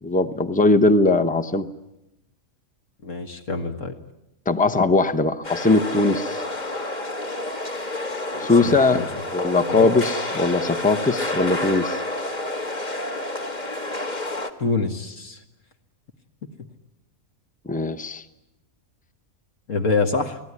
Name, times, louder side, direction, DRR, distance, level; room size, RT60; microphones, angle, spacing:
voice 1, 0.0-1.7 4.5-6.4 8.4-12.0 17.6-18.2, left 3 dB, 5° left, 10 dB, 0.8 m, -20 dB
voice 2, 3.0-4.0 8.3-9.1 9.7-9.9 14.6-15.4 19.7-20.4, left 4 dB, 60° left, 4 dB, 1.9 m, -26 dB
sound 1, 5.4-14.5, left 2 dB, 30° left, 1.8 m, -29 dB
30.0 x 18.5 x 9.7 m, 0.91 s
omnidirectional pair, 1.5 m